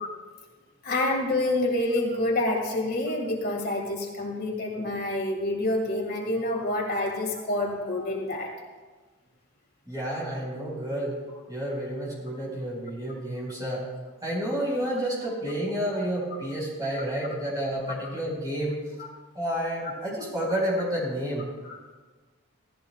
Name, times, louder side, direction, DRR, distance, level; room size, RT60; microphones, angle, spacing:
voice 1, 0.8-8.5 21.7-21.8, left 1 dB, 45° left, 0 dB, 2.0 m, -27 dB
voice 2, 9.9-11.2 11.5-13.8 14.2-18.9 19.3-21.5, equal, 15° right, -5 dB, 4.7 m, -30 dB
16.5 x 15.0 x 2.4 m, 1.3 s
head